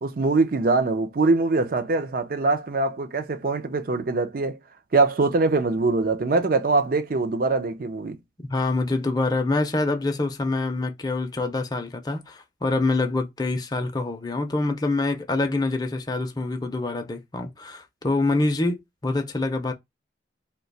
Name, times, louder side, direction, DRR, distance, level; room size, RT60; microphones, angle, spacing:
voice 1, 0.0-4.6 4.9-8.2, right 3 dB, 50° right, 0.5 m, -23 dB
voice 2, 8.5-19.7, left 2 dB, 20° left, 0.5 m, -25 dB
2.8 x 2.2 x 3.9 m
head